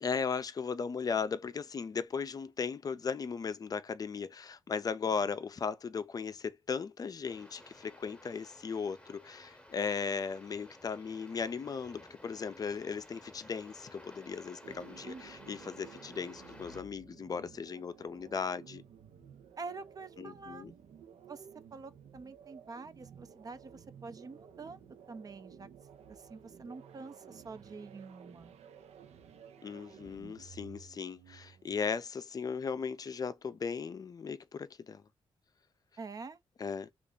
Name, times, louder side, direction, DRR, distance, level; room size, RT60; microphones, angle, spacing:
voice 1, 0.0-18.8 20.2-20.7 29.6-35.0 36.6-36.9, left 5 dB, 35° left, 0.4 m, -37 dB
sound 1, 7.2-16.8, left 1 dB, 10° left, 0.9 m, -55 dB
sound 2, 14.6-31.8, right 7 dB, 85° right, 0.6 m, -54 dB
voice 2, 19.6-20.7 21.3-25.7 26.1-28.6 36.0-36.4, right 4 dB, 35° right, 0.5 m, -46 dB
3.2 x 2.4 x 3.7 m
wide cardioid pair, 125°, 11 cm